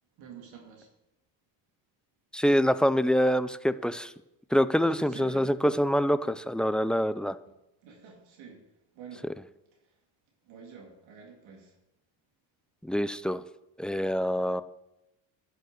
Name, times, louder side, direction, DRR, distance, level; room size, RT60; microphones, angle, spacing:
voice 1, 0.2-0.9 4.8-5.8 7.4-7.5 7.8-8.6 8.9-9.2 10.4-11.7, right 5 dB, 85° right, 1 dB, 2.3 m, -47 dB
voice 2, 2.3-4.1 4.5-7.4 12.8-13.4 13.8-14.6, equal, ahead, 13 dB, 0.4 m, -25 dB
10.5 x 6.9 x 6.6 m, 0.91 s
cardioid pair, 75°, 46 cm